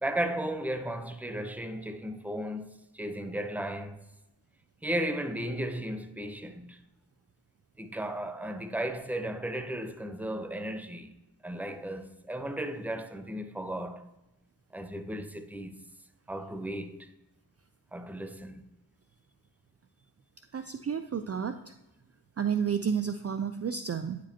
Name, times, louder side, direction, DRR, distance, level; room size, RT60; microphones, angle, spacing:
voice 1, 0.0-4.0 4.8-6.8 7.8-11.1 11.4-14.1 14.7-15.8 16.3-17.1 17.9-18.6, right 1 dB, 5° right, 0.7 m, -35 dB
voice 2, 20.5-21.7 22.4-24.2, right 7 dB, 35° right, 0.4 m, -31 dB
10.0 x 5.0 x 2.8 m
cardioid pair, 45°, 41 cm